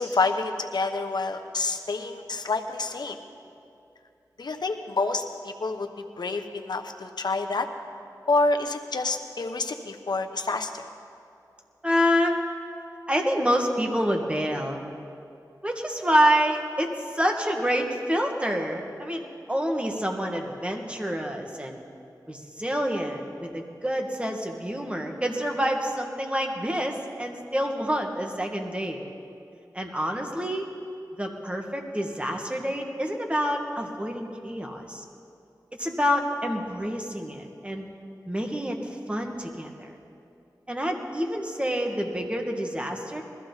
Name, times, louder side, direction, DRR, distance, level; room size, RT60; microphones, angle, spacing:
voice 1, 0.0-3.2 4.4-5.9 6.2-7.7 8.3-10.9, left 3 dB, 75° left, 5 dB, 1.0 m, -28 dB
voice 2, 11.8-12.4 13.1-14.8 15.6-21.8 22.3-29.0 29.7-30.7 31.2-35.0 35.7-37.9 38.3-38.8 39.1-40.0 40.7-43.2, equal, 15° right, 2 dB, 1.8 m, -27 dB
20.5 x 14.5 x 4.1 m, 2.6 s
wide cardioid pair, 55°, 7 cm